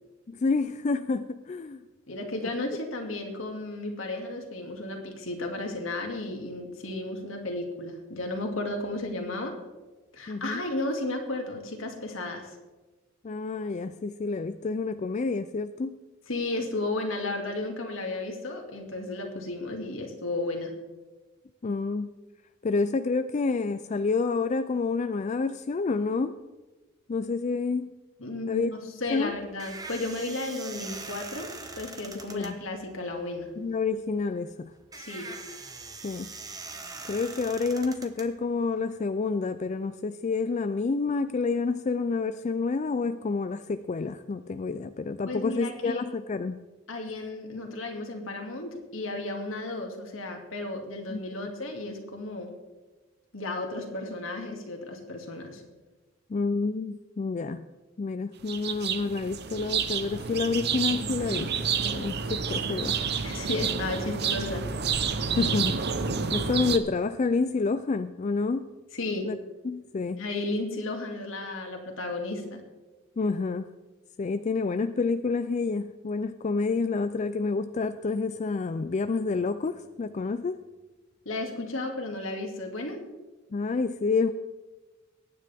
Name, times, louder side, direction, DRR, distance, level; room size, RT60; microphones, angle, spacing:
voice 1, 0.3-1.8 10.3-10.6 13.2-16.0 21.6-22.1 22.6-26.4 27.1-28.0 28.5-28.7 29.1-29.3 32.3-32.6 33.6-34.7 36.0-36.3 37.1-46.6 51.1-51.2 56.3-57.6 58.0-61.5 61.9-63.0 65.3-68.7 69.2-69.4 69.6-70.2 73.2-73.7 74.2-80.6 83.5-84.3, left 4 dB, 35° left, 10 dB, 0.4 m, -28 dB
voice 2, 2.1-9.5 10.1-12.5 16.3-20.7 28.2-31.5 31.8-33.5 35.0-35.3 45.3-46.0 46.9-52.5 53.3-55.6 63.2-64.6 68.9-69.3 70.2-72.6 81.3-83.0, left 2 dB, 75° left, 2 dB, 2.3 m, -33 dB
sound 1, 29.0-39.0, right 3 dB, 20° right, 1.1 m, -43 dB
sound 2, 58.5-66.8, right 6 dB, 55° right, 0.8 m, -29 dB
22.0 x 9.5 x 3.5 m, 1.2 s
head